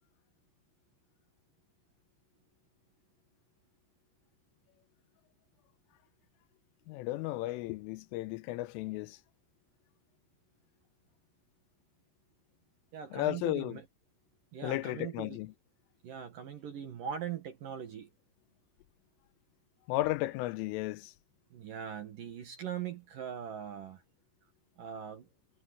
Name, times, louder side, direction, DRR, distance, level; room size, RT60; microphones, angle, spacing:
voice 1, 6.9-9.2 13.1-13.8 14.6-15.5 19.9-21.1, left 17 dB, 90° left, 3.3 m, -34 dB
voice 2, 12.9-13.9 14.5-15.4 16.0-18.1 21.5-24.0 24.8-25.3, right 8 dB, 60° right, 2.4 m, -41 dB
omnidirectional pair, 5.8 m